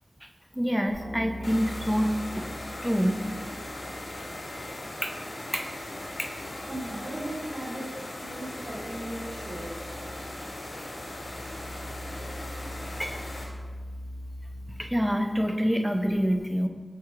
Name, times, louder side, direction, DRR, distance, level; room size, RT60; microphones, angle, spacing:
voice 1, 0.5-2.5 2.8-3.2 5.0-5.2 5.5-5.7 6.2-6.3 13.0-13.1 14.8-16.7, equal, 5° right, 4 dB, 0.6 m, -26 dB
sound 1, 0.9-5.2 5.5-15.1, equal, 40° right, 1.7 m, -43 dB
sound 2, 1.4-13.5, left 1 dB, 80° left, 1.3 m, -39 dB
voice 2, 6.7-10.0, right 1 dB, 80° right, -4 dB, 1.1 m, -37 dB
5.6 x 4.7 x 3.7 m, 1.5 s
wide cardioid pair, 55°, 0 cm